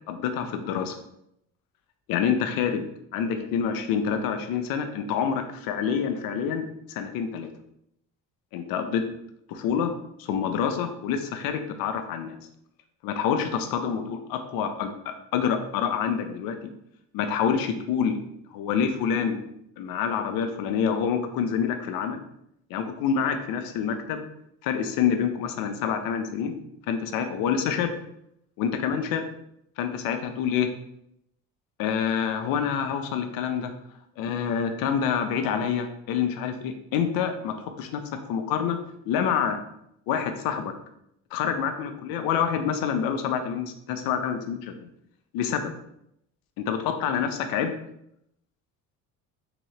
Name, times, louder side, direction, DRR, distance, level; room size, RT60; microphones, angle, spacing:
voice 1, 0.1-1.0 2.1-2.9 3.1-7.5 8.5-9.0 9.5-9.9 10.2-12.4 13.0-16.6 17.1-18.2 18.5-19.4 19.8-22.2 22.7-24.2 24.6-26.5 26.9-27.9 28.6-29.3 29.8-30.7 31.8-33.7 34.2-38.0 38.3-38.8 39.1-39.6 40.1-40.7 41.3-44.9 45.3-45.7 46.6-47.7, left 7 dB, 80° left, 7 dB, 0.6 m, -27 dB
3.6 x 3.0 x 2.9 m, 0.76 s
cardioid pair, 90°, 35 cm